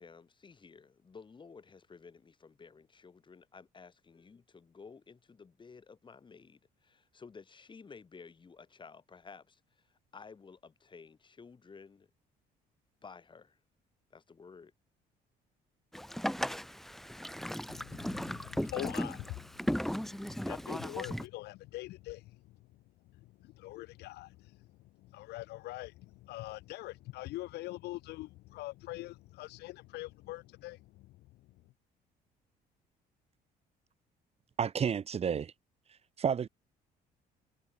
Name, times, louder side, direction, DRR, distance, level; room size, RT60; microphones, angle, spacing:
voice 1, 0.0-12.1 13.0-13.6 14.1-14.7, left 5 dB, 30° left, 4.5 m, -54 dB
Boat Water vehicle, 15.9-21.3, equal, ahead, 1.1 m, -36 dB
voice 2, 17.7-22.6 23.1-24.7 25.0-31.4, left 18 dB, 75° left, 0.6 m, -44 dB
voice 3, 34.6-35.5 36.2-36.5, right 7 dB, 40° right, 1.2 m, -30 dB
cardioid pair, 110°, 17 cm